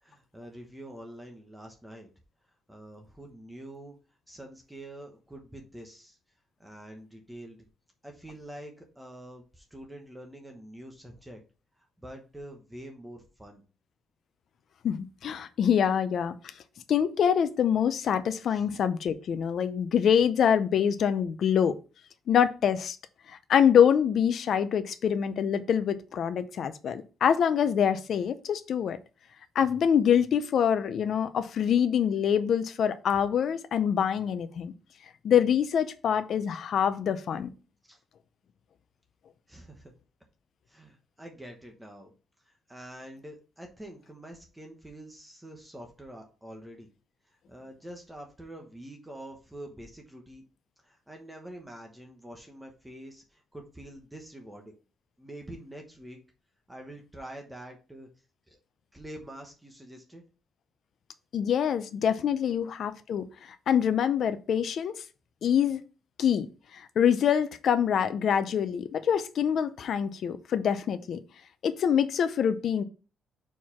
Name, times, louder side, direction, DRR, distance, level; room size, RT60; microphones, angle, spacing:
voice 1, 0.0-2.1 2.7-4.0 4.3-6.2 6.6-7.6 8.0-11.4 11.8-13.6 18.5-18.6 37.9-38.0 39.5-39.9 40.7-42.1 42.4-46.9 47.3-50.4 50.8-54.7 55.2-56.2 56.7-58.1 58.5-58.6 58.9-60.2, right 1 dB, 5° right, 1.0 m, -46 dB
voice 2, 14.8-16.3 16.9-21.8 22.3-23.0 23.3-29.0 29.6-34.7 35.2-37.5 61.3-63.3 63.7-64.9 65.4-65.8 66.2-66.5 66.7-71.2 71.6-72.8, left 8 dB, 55° left, 0.6 m, -25 dB
4.6 x 4.5 x 5.7 m
cardioid pair, 165°, 0 cm